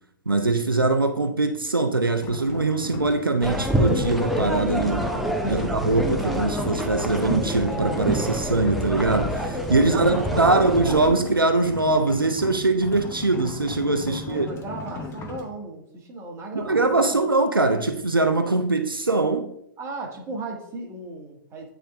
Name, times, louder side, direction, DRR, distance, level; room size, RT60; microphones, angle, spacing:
voice 1, 0.3-5.1 5.4-14.5 16.5-19.5, right 2 dB, 85° right, 0.6 m, -22 dB
sound 1, 2.2-15.4, left 4 dB, 25° left, 1.0 m, -37 dB
sound 2, 3.4-11.1, equal, ahead, 0.6 m, -27 dB
voice 2, 5.4-5.7 9.9-10.6 14.1-17.2 19.8-21.7, right 3 dB, 25° right, 1.5 m, -36 dB
9.0 x 3.5 x 3.6 m
figure-of-eight pair, 105°, 11 cm